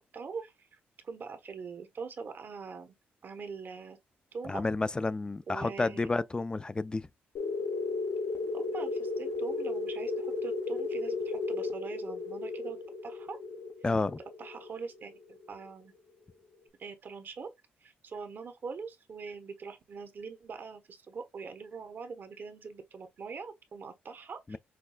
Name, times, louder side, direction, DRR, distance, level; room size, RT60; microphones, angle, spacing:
voice 1, 0.1-0.8 1.0-2.9 3.2-4.0 4.3-4.6 5.5-6.1 8.5-13.4 14.4-15.9 16.8-17.5 17.8-24.6, right 5 dB, 50° right, 1.0 m, -43 dB
voice 2, 4.4-7.1 13.8-14.2 24.5-24.6, left 3 dB, 20° left, 0.3 m, -30 dB
sound 1, 7.4-15.7, left 3 dB, 70° left, 0.8 m, -35 dB
5.9 x 2.3 x 2.2 m
cardioid pair, 70°, 4 cm